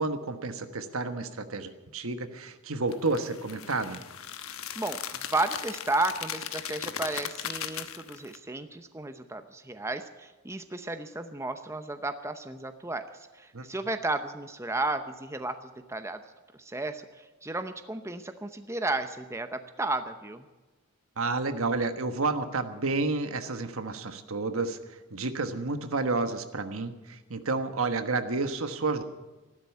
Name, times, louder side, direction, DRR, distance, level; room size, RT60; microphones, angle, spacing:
voice 1, 0.0-4.0 13.5-13.6 21.2-24.8 25.1-29.0, right 3 dB, 75° right, 8 dB, 1.3 m, -30 dB
sound 1, 2.9-8.4, left 9 dB, 80° left, 1.1 m, -38 dB
voice 2, 4.8-16.2 16.6-20.5, right 2 dB, 15° right, 8 dB, 0.7 m, -33 dB
14.0 x 12.0 x 8.4 m, 1.2 s
head